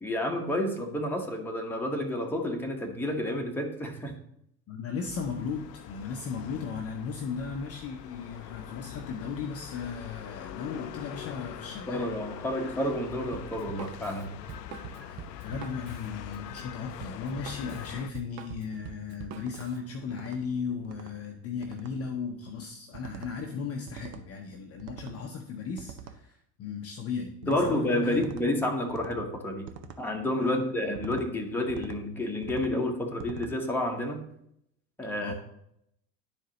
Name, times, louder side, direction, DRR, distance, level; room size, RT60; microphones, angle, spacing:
voice 1, 0.0-4.2 11.9-14.3 15.0-15.2 27.5-29.7 30.0-34.2 35.0-35.3, left 1 dB, 5° left, 1 dB, 1.0 m, -30 dB
voice 2, 4.7-12.1 15.4-28.2 30.4-30.6 35.2-35.3, left 5 dB, 30° left, 3 dB, 0.7 m, -36 dB
sound 1, 5.0-18.1, left 11 dB, 75° left, 0.5 m, -43 dB
Drum kit, 13.3-19.8, right 10 dB, 35° right, 0.5 m, -45 dB
sound 2, 19.4-19.7 20.1-20.4 20.8-21.1 21.6-21.9 22.9-23.3 23.9-24.3 24.8-25.2 25.8-26.2 27.4-27.7 28.2-28.5 28.9-29.2 29.7-30.0 30.9-31.3 31.7-32.0 32.4-32.8 33.2-33.5, right 6 dB, 75° right, 0.7 m, -44 dB
10.5 x 4.6 x 2.9 m, 0.76 s
figure-of-eight pair, 70°, 50 cm